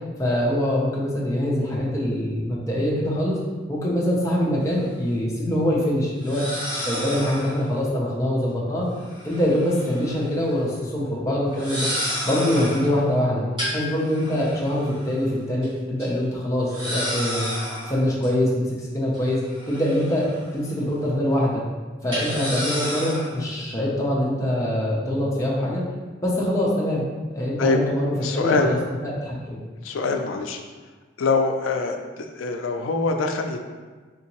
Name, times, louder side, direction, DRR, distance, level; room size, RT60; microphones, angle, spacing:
voice 1, 0.2-3.4 3.7-6.5 6.8-8.9 9.2-11.9 12.2-13.4 13.7-17.5 17.9-19.4 19.7-20.3 20.5-21.6 22.0-25.8 26.2-27.0 27.3-28.8 29.0-29.6, left 1 dB, 15° left, -5 dB, 0.6 m, -24 dB
sound 1, 4.6-4.7 6.2-7.6 9.0-10.2 10.5-10.7 11.5-12.9 13.6-15.2 15.6-15.7 16.0-16.1 16.7-18.3 19.1-20.6 20.9-21.0 22.1-23.4, equal, 25° right, 1.2 m, -31 dB
voice 2, 28.2-28.7 29.8-30.6 31.2-33.6, left 4 dB, 90° left, 5 dB, 0.4 m, -24 dB
3.7 x 2.8 x 2.9 m, 1.4 s
head